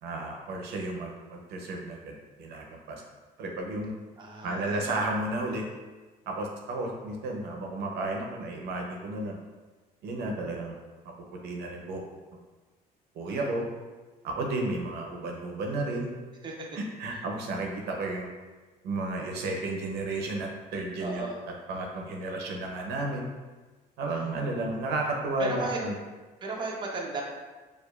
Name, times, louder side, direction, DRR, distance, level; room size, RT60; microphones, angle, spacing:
voice 1, 0.0-3.0 3.4-3.9 4.4-5.6 6.3-9.4 10.0-10.8 11.4-12.0 13.1-13.6 14.2-16.1 16.7-18.3 18.8-21.2 21.7-23.3 24.0-26.0, right 2 dB, 75° right, 1 dB, 0.6 m, -32 dB
voice 2, 4.2-4.9 13.3-13.6 16.4-16.7 21.0-21.3 25.4-25.8 26.4-27.2, right 3 dB, 25° right, -1 dB, 0.6 m, -35 dB
4.6 x 2.4 x 2.3 m, 1.3 s
cardioid pair, 110°, 17 cm